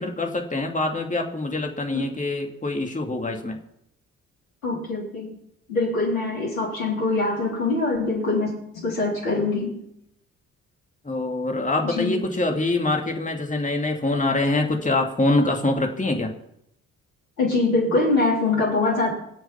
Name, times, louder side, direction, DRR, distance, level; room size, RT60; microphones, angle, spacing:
voice 1, 0.0-3.6 11.0-16.3, left 2 dB, 20° left, 3 dB, 2.6 m, -24 dB
voice 2, 4.6-5.3 5.7-9.7 11.8-12.2 17.4-19.1, left 3 dB, 85° left, -2 dB, 3.6 m, -23 dB
23.0 x 7.8 x 5.9 m, 0.77 s
figure-of-eight pair, 40°, 40 cm